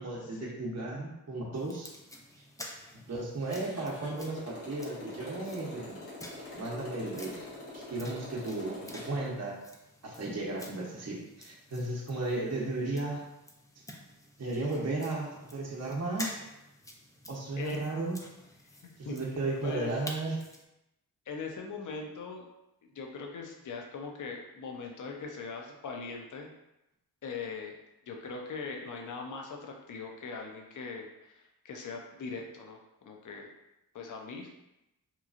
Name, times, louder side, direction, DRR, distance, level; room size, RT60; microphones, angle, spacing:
voice 1, 0.0-1.9 3.1-6.0 6.5-7.3 7.7-9.6 10.0-13.2 14.4-16.4 17.3-18.2 19.0-20.4, right 2 dB, 40° right, -3 dB, 0.8 m, -34 dB
sound 1, 1.5-20.6, left 1 dB, 10° left, 0.4 m, -50 dB
Motorcycle, 3.4-9.3, left 2 dB, 80° left, 1.1 m, -45 dB
voice 2, 18.8-19.2 19.6-19.9 21.3-22.5 22.9-26.5 27.2-27.8 28.1-33.5 33.9-34.5, left 4 dB, 50° left, 1 dB, 0.6 m, -40 dB
3.0 x 2.3 x 2.5 m, 0.88 s
supercardioid pair, 45°, 39 cm